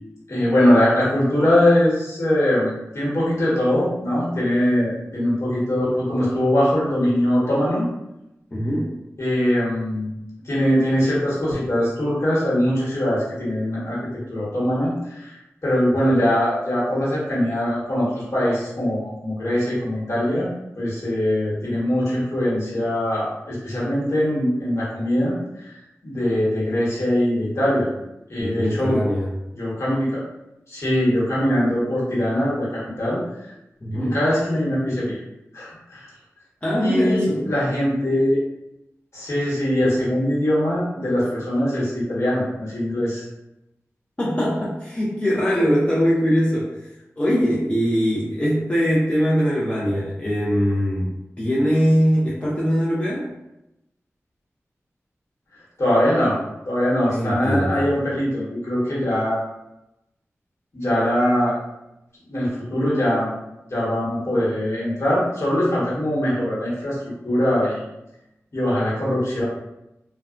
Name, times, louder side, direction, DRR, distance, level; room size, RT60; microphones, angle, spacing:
voice 1, 0.3-7.9 9.2-10.1 10.4-14.0 14.3-15.4 15.6-20.5 20.8-25.7 26.0-27.9 28.3-29.0 29.6-30.2 30.7-33.2 33.9-35.2 35.5-36.1 36.8-38.4 39.1-43.3 55.8-56.4 56.6-59.5 60.7-61.6 62.3-63.3 63.7-67.0 67.2-67.8 68.5-69.4, equal, 60° left, -8 dB, 1.2 m, -22 dB
voice 2, 8.5-8.9 28.4-29.3 33.8-34.2 36.6-37.5 44.2-46.9 47.2-51.1 51.4-53.3 57.1-57.9, equal, 25° left, -7 dB, 0.6 m, -21 dB
2.6 x 2.1 x 2.4 m, 0.91 s
cardioid pair, 45°, 5 cm